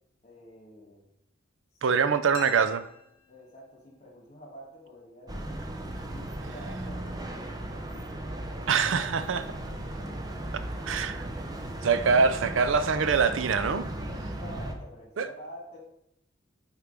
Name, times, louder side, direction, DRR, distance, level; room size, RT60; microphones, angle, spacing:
voice 1, 0.2-1.0 1.7-2.3 3.3-5.4 6.1-10.3 10.7-11.9 14.0-15.8, equal, 35° left, 2.3 m, -49 dB
voice 2, 1.8-2.8 8.7-9.4 10.9-11.2 11.8-13.9 15.2-15.3, right 5 dB, 80° right, 0.5 m, -24 dB
sound 1, 2.3-4.0, left 5 dB, 85° left, 0.9 m, -46 dB
sound 2, 5.3-14.7, right 1 dB, 20° right, 0.6 m, -36 dB
8.6 x 4.6 x 3.4 m
head